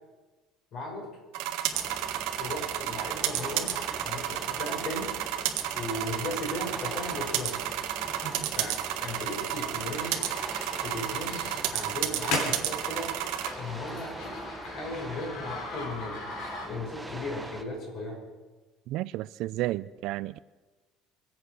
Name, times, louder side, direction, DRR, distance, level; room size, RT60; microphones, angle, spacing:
voice 1, 0.7-1.1 2.4-3.8 4.0-5.1 5.7-7.6 8.6-10.2 10.8-11.5 11.7-13.1 13.6-14.2 14.6-16.2 16.6-18.2, left 2 dB, 50° left, 5.5 m, -36 dB
sound 1, 1.3-13.5, right 12 dB, 85° right, 1.6 m, -32 dB
sound 2, 1.7-17.6, right 1 dB, 5° right, 1.0 m, -43 dB
sound 3, 8.2-17.0, left 2 dB, 70° left, 3.7 m, -39 dB
voice 2, 18.9-20.4, right 16 dB, 65° right, 0.4 m, -32 dB
24.0 x 8.1 x 6.3 m
cardioid pair, 145°, 0 cm